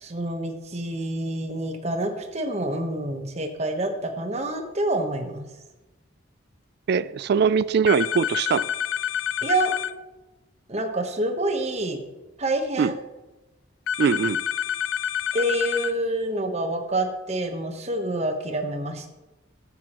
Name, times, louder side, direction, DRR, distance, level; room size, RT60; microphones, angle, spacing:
voice 1, 0.0-5.5 9.4-9.7 10.7-12.0 12.4-12.9 15.3-19.0, right 1 dB, 35° right, 4 dB, 1.1 m, -27 dB
voice 2, 6.9-8.7 12.8-13.0 14.0-14.4, right 6 dB, 55° right, 18 dB, 0.3 m, -22 dB
sound 1, 7.9-9.9 13.9-15.9, left 9 dB, 75° left, 0.3 m, -28 dB
12.5 x 8.3 x 3.0 m, 1.1 s
head